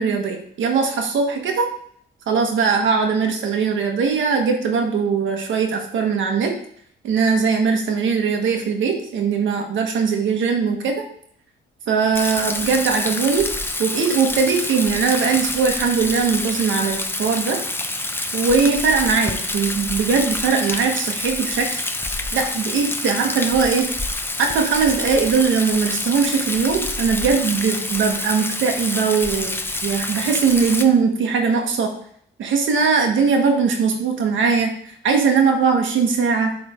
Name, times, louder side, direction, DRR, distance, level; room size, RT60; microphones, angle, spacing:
voice 1, 0.0-1.7 2.3-6.5 7.0-11.0 11.9-13.5 13.8-17.6 18.3-21.8 22.3-23.9 24.4-29.5 29.8-31.9 32.4-34.7 35.0-36.5, right 5 dB, 75° right, 3 dB, 1.5 m, -20 dB
Rain, 12.1-30.8, left 2 dB, 10° left, 0.7 m, -27 dB
11.0 x 3.8 x 3.7 m, 0.66 s
cardioid pair, 90°, 20 cm